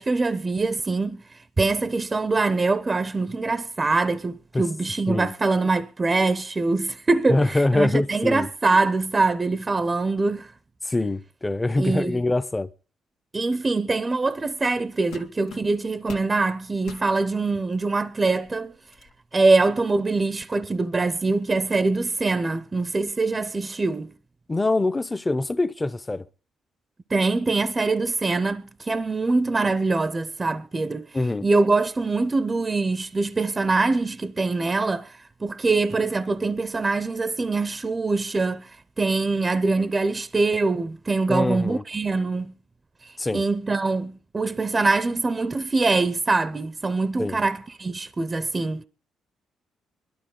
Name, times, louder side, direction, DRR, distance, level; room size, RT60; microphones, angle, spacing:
voice 1, 0.0-10.5 11.8-12.2 13.3-18.7 19.3-24.1 27.1-31.1 31.4-42.5 43.0-48.8, right 3 dB, 25° right, 0.6 m, -24 dB
voice 2, 7.3-8.5 10.8-12.7 24.5-26.3 31.1-31.4 41.3-41.8 43.2-43.4 47.2-47.4, left 2 dB, 15° left, 0.7 m, -24 dB
sound 1, 14.4-14.6 15.1-16.3 16.8-17.1 17.8-17.9 18.4-19.1, left 7 dB, 90° left, 1.6 m, -42 dB
20.0 x 12.5 x 3.8 m
cardioid pair, 90°, 0 cm